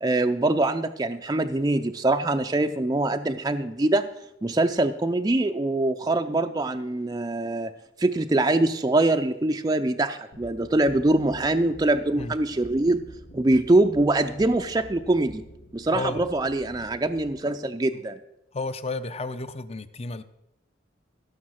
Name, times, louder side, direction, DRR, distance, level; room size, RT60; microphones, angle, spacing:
voice 1, 0.0-4.1 4.4-7.7 8.0-13.0 13.3-15.4 15.7-18.2, right 2 dB, 20° right, 6 dB, 0.4 m, -23 dB
sound 1, 10.3-17.4, equal, 85° left, 1.5 m, -47 dB
voice 2, 15.9-16.3 17.9-18.0 18.5-20.2, left 3 dB, 35° left, 13 dB, 0.7 m, -32 dB
16.0 x 6.6 x 6.3 m, 0.86 s
head